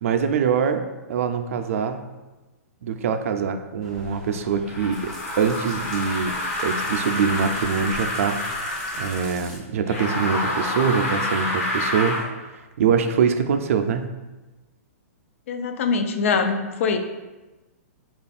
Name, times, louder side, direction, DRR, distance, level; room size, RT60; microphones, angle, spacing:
voice 1, 0.0-2.1 2.8-5.1 5.4-6.4 6.6-8.4 9.0-12.2 12.8-14.1, right 6 dB, 65° right, 7 dB, 0.4 m, -23 dB
sound 1, 3.8-9.6, left 1 dB, 5° left, 0.5 m, -41 dB
sound 2, 4.7-9.3 9.8-12.3, left 1 dB, 80° left, 1.3 m, -28 dB
voice 2, 15.5-17.0, left 5 dB, 60° left, 6 dB, 0.4 m, -23 dB
3.4 x 2.4 x 4.0 m, 1.1 s
hypercardioid pair, 160°, 8 cm